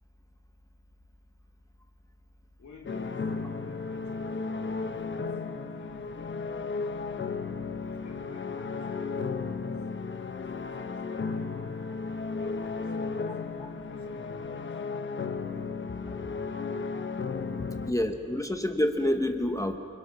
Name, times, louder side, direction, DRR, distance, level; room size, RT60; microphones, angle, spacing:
voice 1, 2.6-5.3 5.7-6.8 7.8-9.9 10.3-11.6 12.4-13.4 13.8-14.8 15.2-17.0 17.5-17.8, left 3 dB, 65° left, -1 dB, 3.0 m, -50 dB
sound 1, 2.9-17.9, left 4 dB, 40° left, 0.9 m, -34 dB
voice 2, 17.9-19.8, left 1 dB, 10° left, 5 dB, 0.9 m, -28 dB
28.5 x 24.5 x 5.9 m, 2.7 s
wide cardioid pair, 160°, 31 cm